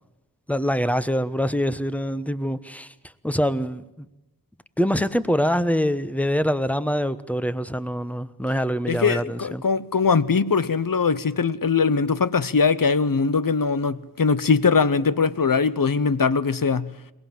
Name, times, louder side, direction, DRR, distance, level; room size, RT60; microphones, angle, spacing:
voice 1, 0.5-2.9 3.2-4.1 4.8-9.6, equal, 5° left, 1.1 m, -24 dB
voice 2, 8.9-16.9, left 5 dB, 60° left, 1.0 m, -21 dB
22.0 x 19.5 x 7.7 m
wide cardioid pair, 45°, 37 cm